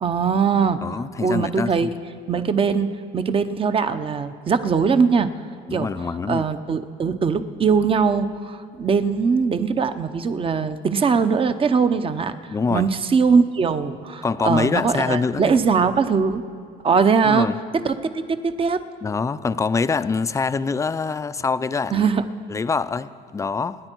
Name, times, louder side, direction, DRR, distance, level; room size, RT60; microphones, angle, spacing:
voice 1, 0.0-0.8 1.2-1.9 2.3-2.9 3.1-5.3 5.7-5.9 6.3-16.4 16.8-17.5 17.8-18.8 21.9-22.2, right 5 dB, 30° right, 11 dB, 0.7 m, -21 dB
voice 2, 0.8-1.9 5.7-6.5 12.5-12.9 14.2-15.6 17.2-17.6 19.0-22.1 22.5-23.8, left 4 dB, 20° left, 14 dB, 0.4 m, -24 dB
26.0 x 9.9 x 4.5 m, 2.2 s
cardioid pair, 110°, 17 cm